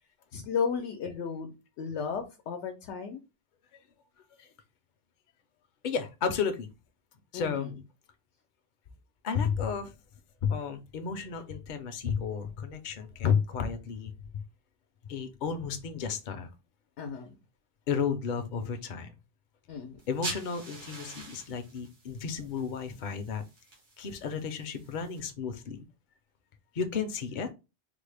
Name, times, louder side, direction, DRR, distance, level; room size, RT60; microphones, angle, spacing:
voice 1, 0.3-3.2 7.3-7.7 17.0-17.3 19.7-20.0, left 6 dB, 85° left, 0.9 m, -34 dB
voice 2, 5.8-6.7 7.3-7.7 9.2-9.9 10.4-14.4 15.0-16.5 17.9-19.1 20.1-23.4 24.0-25.9 26.7-27.5, left 6 dB, 55° left, 0.6 m, -32 dB
sound 1, 20.0-25.2, right 2 dB, 90° right, 1.5 m, -44 dB
3.8 x 2.0 x 3.2 m
omnidirectional pair, 1.1 m